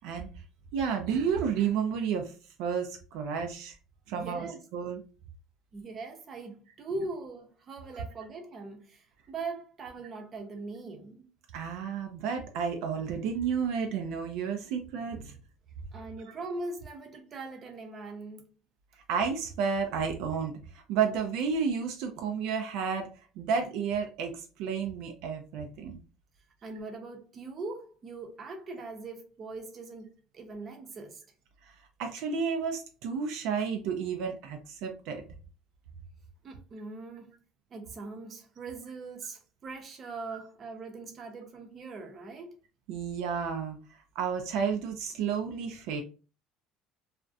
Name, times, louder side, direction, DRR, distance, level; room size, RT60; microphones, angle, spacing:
voice 1, 0.7-2.3 2.6-3.8 4.1-5.0 7.9-8.0 11.5-15.4 19.1-26.0 31.6-35.2 40.3-40.4 42.9-46.0, right 6 dB, 75° right, 0.4 m, -31 dB
voice 2, 4.2-4.6 5.7-11.3 15.9-18.5 26.6-31.2 36.4-37.3 37.7-42.5, right 3 dB, 35° right, 0.6 m, -41 dB
2.4 x 2.1 x 2.5 m
cardioid pair, 125°, 0 cm